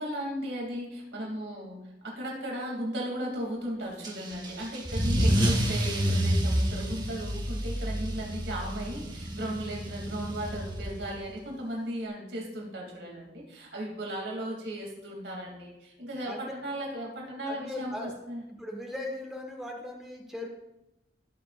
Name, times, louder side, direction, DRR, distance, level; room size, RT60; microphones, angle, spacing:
voice 1, 0.0-18.4, equal, 85° right, -1 dB, 2.9 m, -36 dB
Car / Engine starting / Accelerating revving vroom, 4.0-11.2, equal, 25° right, 1.5 m, -29 dB
voice 2, 17.5-18.1 18.5-20.5, left 1 dB, 5° right, 0 dB, 1.6 m, -38 dB
19.5 x 7.6 x 2.5 m, 0.93 s
head